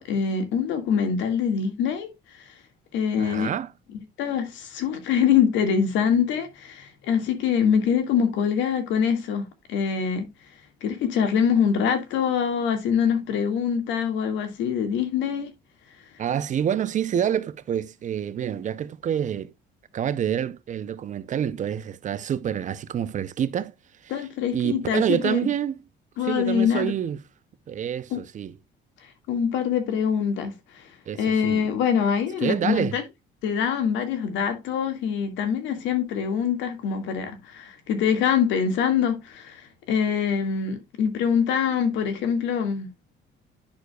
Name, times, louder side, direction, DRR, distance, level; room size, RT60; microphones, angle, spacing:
voice 1, 0.0-2.1 2.9-3.5 4.2-9.4 9.7-10.3 10.8-15.5 24.1-25.5 26.2-26.9 28.1-28.2 29.3-30.9 31.2-33.0 33.4-42.9, left 7 dB, 85° left, 2.0 m, -24 dB
voice 2, 3.2-3.7 16.2-19.5 19.9-23.7 24.0-24.3 24.5-25.8 26.2-27.2 27.7-28.5 31.1-31.6 32.4-33.0, right 9 dB, 40° right, 0.6 m, -27 dB
10.5 x 6.5 x 2.3 m
cardioid pair, 130°, 19 cm